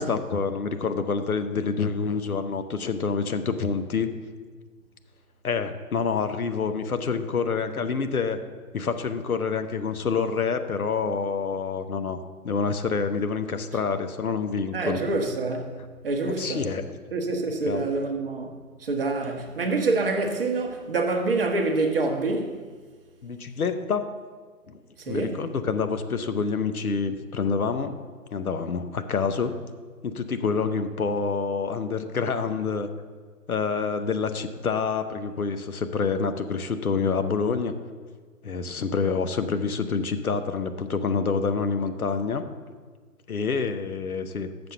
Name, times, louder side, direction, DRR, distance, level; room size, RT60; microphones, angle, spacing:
voice 1, 0.0-4.1 5.4-8.4 8.7-12.2 12.4-15.0 16.2-16.9 17.7-17.9 23.2-24.1 24.7-24.8 25.1-28.0 28.3-29.5 30.0-32.9 33.5-37.7 38.4-42.4 43.3-44.7, left 5 dB, 70° left, 0.8 m, -27 dB
voice 2, 14.7-16.7 17.1-22.6 25.0-25.5, right 3 dB, 40° right, 0.9 m, -27 dB
6.9 x 6.1 x 6.8 m
figure-of-eight pair, 135°, 45 cm